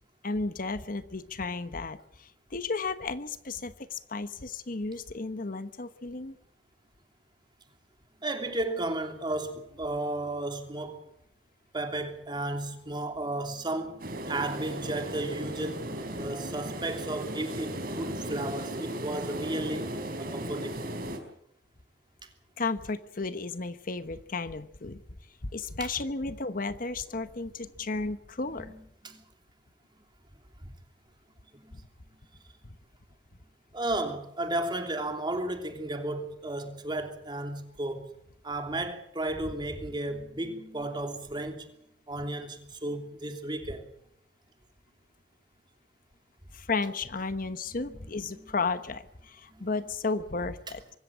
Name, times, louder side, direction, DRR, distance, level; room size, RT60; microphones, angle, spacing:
voice 1, 0.2-6.4 22.6-25.0 25.4-28.7 32.7-32.8 46.5-50.8, left 3 dB, 55° left, 1.1 m, -33 dB
voice 2, 8.2-11.1 11.7-15.9 16.2-19.9 20.2-20.8 28.5-29.2 30.6-30.7 31.5-31.8 33.7-38.1 38.4-41.8 42.1-43.9 47.8-48.0 48.3-48.5 49.5-49.7, right 1 dB, 25° right, 3.0 m, -34 dB
sound 1, 14.0-21.2, right 1 dB, 60° right, 4.4 m, -36 dB
24.5 x 14.0 x 8.5 m
head